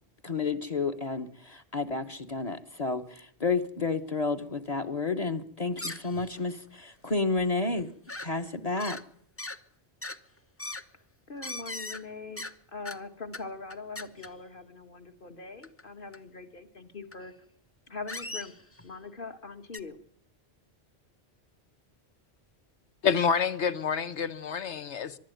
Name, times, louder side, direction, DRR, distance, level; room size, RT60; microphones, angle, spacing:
voice 1, 0.2-7.9 8.2-9.0, left 3 dB, 35° left, 1.2 m, -31 dB
sound 1, 5.8-6.5 6.8-6.9 7.4-7.5 7.7-8.3 8.8-9.0 9.4-9.6 10.0-10.2 10.6-10.8 11.4-12.0 12.4-12.6 12.8-13.0 13.3-13.4 13.7-14.3 15.6-15.8 16.1-16.2 17.1-17.2 18.1-18.9 19.7-19.8, left 2 dB, 15° left, 0.6 m, -39 dB
voice 2, 11.3-12.4 12.7-17.3 17.9-20.0, left 3 dB, 50° left, 1.9 m, -42 dB
voice 3, 23.0-25.2, left 6 dB, 85° left, 1.3 m, -28 dB
23.5 x 12.0 x 9.1 m
omnidirectional pair, 1.1 m